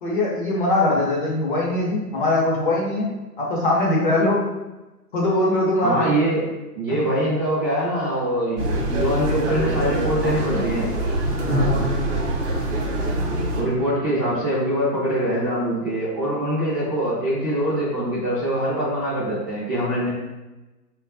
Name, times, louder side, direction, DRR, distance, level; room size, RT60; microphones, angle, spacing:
voice 1, 0.0-3.1 3.4-4.4 5.1-6.1 6.9-7.0 8.8-8.9 11.5-11.8, left 2 dB, 35° left, -4 dB, 0.6 m, -21 dB
voice 2, 5.8-6.4 6.7-8.6 8.9-10.9 13.5-20.1, right 1 dB, 15° right, -11 dB, 0.5 m, -23 dB
sound 1, 8.6-13.6, right 1 dB, 45° right, 0.8 m, -24 dB
3.7 x 2.2 x 2.5 m, 1.1 s
figure-of-eight pair, 135°, 48 cm